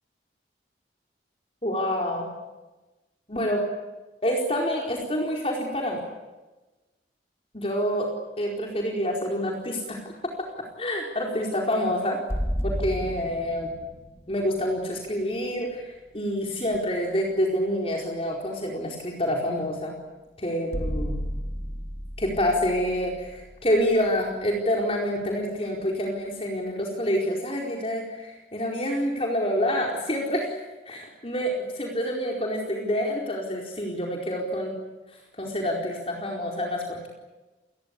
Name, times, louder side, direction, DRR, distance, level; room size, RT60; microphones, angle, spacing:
voice 1, 1.6-2.3 3.3-3.6 4.2-6.0 7.5-8.1 8.4-10.0 10.8-12.2 12.6-13.7 14.3-19.9 20.4-21.2 22.2-30.5 30.9-34.7 35.4-37.1, equal, 30° left, -1 dB, 4.6 m, -27 dB
sound 1, 12.3-16.1 19.7-19.8 20.7-24.6, equal, 15° left, 3.8 m, -33 dB
29.0 x 21.5 x 8.4 m, 1.1 s
head